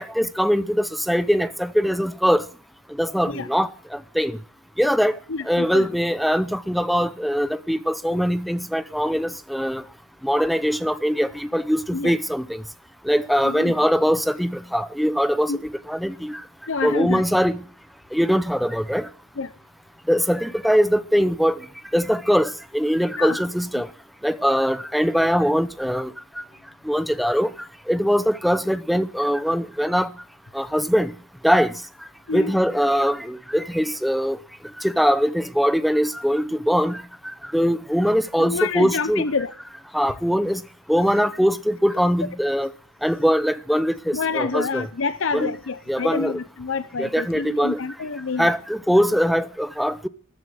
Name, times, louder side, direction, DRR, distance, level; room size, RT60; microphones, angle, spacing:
voice 1, 0.0-2.4 3.0-4.4 4.8-5.2 5.5-9.8 10.2-12.6 13.0-16.4 16.8-17.6 18.1-19.1 20.1-21.6 21.9-23.9 24.2-26.4 26.8-27.5 27.9-30.1 30.5-31.1 31.4-31.7 32.3-34.4 34.8-37.0 37.5-39.2 39.9-40.6 40.9-42.7 43.0-44.9 45.3-45.5 45.9-46.4 47.0-47.8 48.4-50.1, equal, ahead, 0.7 m, -22 dB
voice 2, 5.3-5.9 11.9-12.1 13.4-13.7 15.5-15.6 16.7-17.2 19.4-19.5 23.2-23.3 23.7-23.8 32.3-32.5 38.4-39.5 44.1-48.5, left 4 dB, 70° left, 0.8 m, -27 dB
14.0 x 12.0 x 7.7 m
head